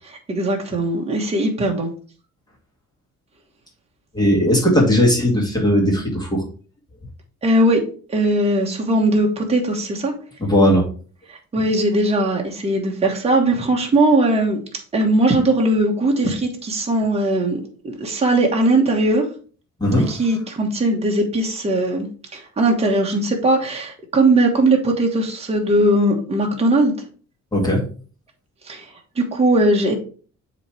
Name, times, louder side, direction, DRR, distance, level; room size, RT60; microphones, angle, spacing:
voice 1, 0.3-1.9 7.4-7.8 8.1-10.1 11.3-14.6 14.9-17.6 17.8-19.2 20.0-26.9 28.6-30.0, right 1 dB, 20° right, 0 dB, 1.3 m, -19 dB
voice 2, 4.1-6.4 10.5-10.9 19.8-20.1 27.5-27.8, equal, 15° left, -2 dB, 2.1 m, -17 dB
7.4 x 3.1 x 4.8 m, 0.40 s
cardioid pair, 140°, 29 cm